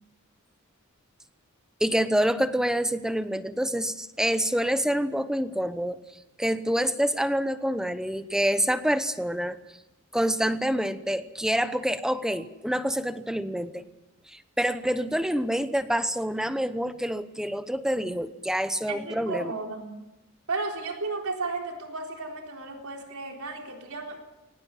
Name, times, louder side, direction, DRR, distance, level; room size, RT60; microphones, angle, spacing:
voice 1, 1.8-6.0 6.4-9.6 10.1-13.8 14.6-19.5, equal, 5° right, 11 dB, 0.9 m, -27 dB
voice 2, 18.9-19.9 20.5-24.3, right 3 dB, 85° right, 2 dB, 4.0 m, -34 dB
22.5 x 19.5 x 7.7 m, 0.95 s
head